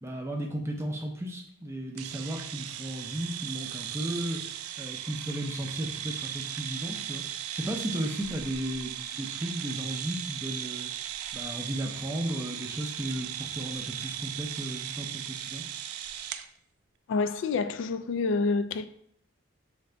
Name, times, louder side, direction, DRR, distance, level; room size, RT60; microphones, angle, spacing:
voice 1, 0.0-7.2 7.5-10.9 11.3-15.6, right 1 dB, 10° right, 0.5 m, -35 dB
sound 1, 2.0-16.5, right 10 dB, 85° right, 0.3 m, -37 dB
voice 2, 17.1-18.9, left 4 dB, 60° left, 0.3 m, -28 dB
4.8 x 2.6 x 3.3 m
head